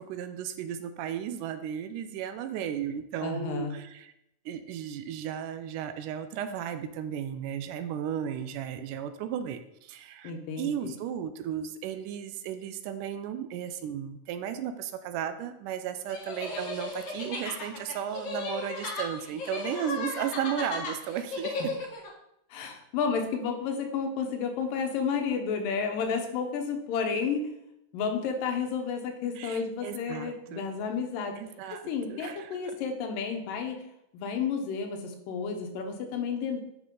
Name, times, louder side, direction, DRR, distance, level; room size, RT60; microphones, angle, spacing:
voice 1, 0.0-4.1 4.5-10.3 10.6-21.7 29.4-30.6 31.4-32.8, right 9 dB, 80° right, 9 dB, 2.1 m, -35 dB
voice 2, 3.2-3.8 10.2-10.9 22.5-27.5 27.9-31.4 31.7-33.8 34.1-36.6, left 6 dB, 90° left, 4 dB, 2.7 m, -31 dB
sound 1, 16.1-22.1, left 3 dB, 60° left, 1.3 m, -35 dB
9.6 x 5.5 x 3.8 m, 0.81 s
omnidirectional pair, 3.8 m